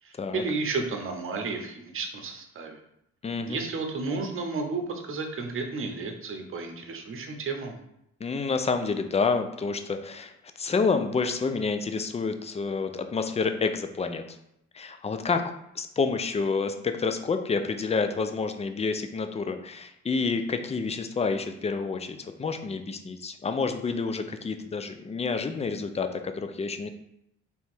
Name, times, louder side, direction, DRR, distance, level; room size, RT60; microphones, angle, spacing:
voice 1, 0.0-2.8 3.5-7.8, right 3 dB, 45° right, 4 dB, 0.8 m, -32 dB
voice 2, 3.2-3.6 8.2-10.3 10.6-14.2 14.7-15.4 15.8-26.9, left 4 dB, 20° left, 7 dB, 0.4 m, -28 dB
3.4 x 2.9 x 4.3 m, 0.79 s
cardioid pair, 90°, 30 cm